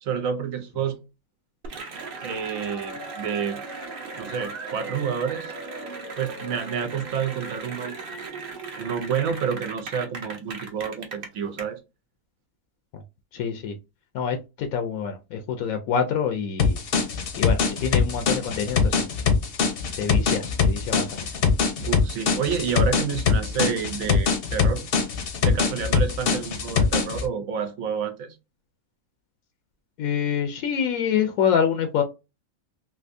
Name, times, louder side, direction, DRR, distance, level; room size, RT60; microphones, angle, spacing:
voice 1, 0.0-1.0 2.2-3.6 4.2-5.5 6.2-7.9 8.8-11.8 21.8-24.8 25.4-28.4, right 7 dB, 70° right, 1.1 m, -29 dB
Cheering / Applause, 1.6-11.6, right 3 dB, 45° right, 0.9 m, -37 dB
voice 2, 13.3-13.7 14.1-16.8 17.4-19.0 20.0-21.2 30.0-32.0, left 7 dB, 75° left, 1.0 m, -26 dB
sound 1, 16.6-27.3, left 5 dB, 50° left, 0.7 m, -23 dB
3.4 x 2.7 x 2.5 m
omnidirectional pair, 1.5 m